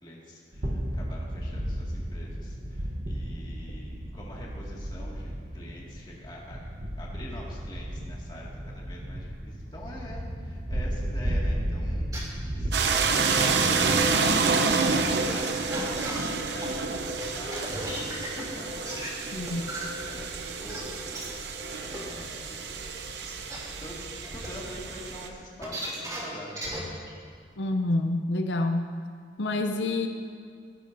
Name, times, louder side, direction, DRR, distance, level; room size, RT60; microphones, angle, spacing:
voice 1, 0.0-6.6 7.0-14.3 14.6-22.7 23.8-26.6, equal, 25° left, -4 dB, 2.1 m, -45 dB
sound 1, 0.5-12.7, equal, 50° right, 1.1 m, -34 dB
sound 2, 12.1-12.2 13.1-13.6 13.9-14.0 14.4-14.5 14.7-14.8 15.3-15.4 15.7-16.7 17.2-18.4 18.8-19.1 19.5-19.8 20.3-20.4 20.7-20.8 21.1-21.2 21.9-22.0 22.7-22.8 23.2-23.6 24.2-24.5 25.6-26.2 26.5-26.8 27.1-27.2, right 1 dB, 20° right, 2.9 m, -35 dB
sound 3, 12.7-25.3, right 4 dB, 70° right, 0.8 m, -28 dB
voice 2, 27.6-29.0 29.4-30.1, left 2 dB, 85° left, 5 dB, 0.7 m, -27 dB
18.5 x 11.0 x 2.7 m, 2.1 s
head